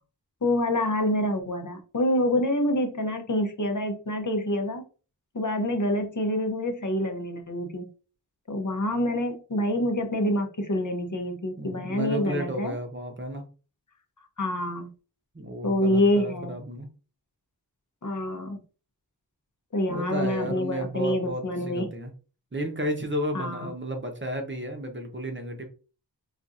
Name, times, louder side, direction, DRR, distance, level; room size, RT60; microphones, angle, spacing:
voice 1, 0.4-4.8 5.3-7.9 8.5-12.7 14.4-14.9 15.6-16.5 18.0-18.6 19.7-21.9 23.3-23.7, left 1 dB, 45° left, 5 dB, 0.7 m, -26 dB
voice 2, 11.6-13.4 15.3-16.9 19.9-22.1 22.5-25.6, equal, 30° right, 4 dB, 0.8 m, -32 dB
4.1 x 2.5 x 2.4 m, 0.35 s
wide cardioid pair, 45°, 42 cm